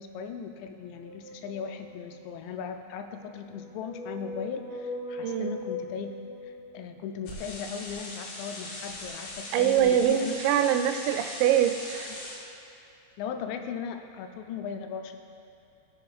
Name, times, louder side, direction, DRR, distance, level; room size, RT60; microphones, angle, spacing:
voice 1, 0.0-6.2 6.4-10.3 12.1-12.2 13.2-15.2, left 7 dB, 90° left, 6 dB, 2.9 m, -38 dB
sound 1, 0.8-2.4 3.3-7.1, left 3 dB, 60° right, 0.8 m, -40 dB
voice 2, 5.2-5.6 9.5-12.1, right 10 dB, 90° right, 7 dB, 2.8 m, -24 dB
sound 2, 7.3-12.4, left 2 dB, 70° left, 3.0 m, -40 dB
16.0 x 6.6 x 2.4 m, 2.6 s
omnidirectional pair, 5.0 m